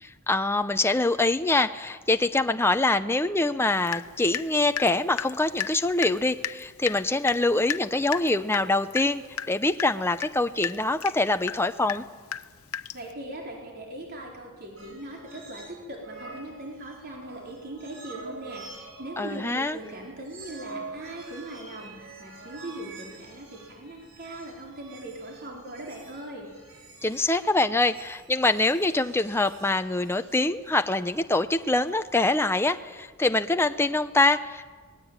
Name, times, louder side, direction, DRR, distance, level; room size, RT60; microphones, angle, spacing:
voice 1, 0.0-12.0 19.2-19.8 27.0-34.6, left 2 dB, 10° left, 8 dB, 0.7 m, -24 dB
Water tap faucet / Drip, 3.9-4.5 4.8-13.1, left 9 dB, 85° left, 0.8 m, -34 dB
voice 2, 12.9-26.5, right 1 dB, 50° right, -1 dB, 4.3 m, -40 dB
sound 1, 14.8-15.8 16.0-32.7, right 3 dB, 75° right, 5.3 m, -47 dB
25.0 x 19.5 x 8.9 m, 1.5 s
head